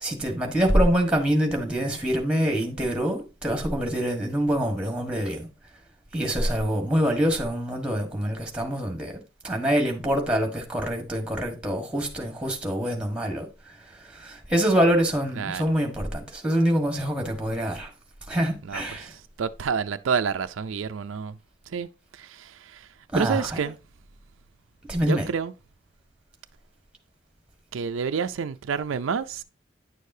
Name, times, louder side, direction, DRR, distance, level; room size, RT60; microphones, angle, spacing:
voice 1, 0.0-5.5 6.1-9.1 9.4-13.5 14.2-17.9 18.3-19.1 23.1-23.5 24.9-25.3, equal, 5° right, 1.4 m, -25 dB
voice 2, 18.6-21.4 21.7-21.9 22.2-22.9 23.2-23.8 25.0-25.5 27.7-29.4, right 6 dB, 85° right, 0.4 m, -29 dB
9.8 x 6.5 x 2.7 m
head